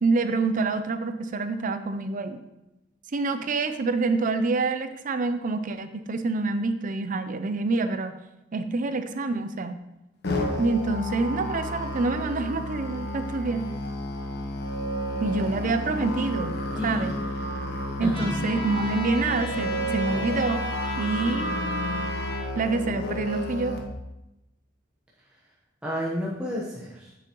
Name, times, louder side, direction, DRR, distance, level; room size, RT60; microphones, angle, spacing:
voice 1, 0.0-2.4 3.1-8.2 8.5-9.8 10.6-13.7 15.2-16.6 16.8-17.1 18.0-20.6 21.0-21.5 22.5-23.8, right 3 dB, 45° right, 10 dB, 0.5 m, -27 dB
Musical instrument, 10.2-23.8, equal, 60° left, 1.1 m, -31 dB
voice 2, 16.7-17.1 17.4-17.5 18.0-18.4 25.8-27.1, equal, 5° right, -7 dB, 1.1 m, -31 dB
Trumpet, 18.1-22.4, left 3 dB, 30° left, 1.4 m, -35 dB
8.8 x 6.9 x 3.0 m, 0.94 s
head